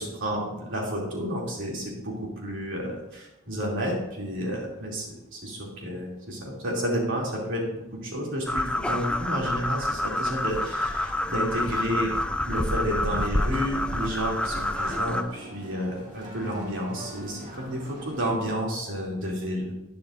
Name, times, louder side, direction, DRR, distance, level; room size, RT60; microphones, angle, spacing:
voice 1, 0.0-12.1 12.4-19.7, equal, 65° right, -2 dB, 2.8 m, -31 dB
sound 1, 8.5-15.2, left 1 dB, 5° left, 0.4 m, -28 dB
sound 2, 13.3-18.3, right 1 dB, 35° right, 2.2 m, -43 dB
11.5 x 10.0 x 2.6 m, 0.93 s
head